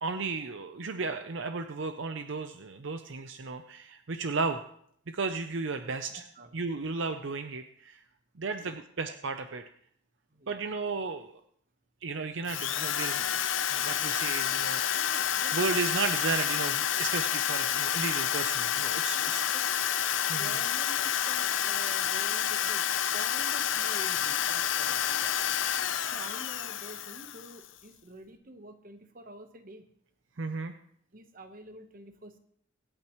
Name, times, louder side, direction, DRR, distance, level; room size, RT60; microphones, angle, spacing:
voice 1, 0.0-4.6 5.1-6.2 6.5-8.0 8.4-9.6 10.5-11.4 12.0-15.0 15.5-19.4 20.3-20.6 30.4-30.7, right 4 dB, 65° right, 8 dB, 0.6 m, -34 dB
voice 2, 6.1-6.5 8.6-8.7 9.0-9.2 9.4-9.6 10.3-10.6 14.9-15.6 19.1-19.7 20.4-25.4 26.0-29.9 31.1-32.4, right 1 dB, 45° right, 7 dB, 1.1 m, -48 dB
Drill, 12.5-27.7, left 9 dB, 65° left, 0.6 m, -29 dB
24.5 x 8.8 x 3.1 m, 0.66 s
head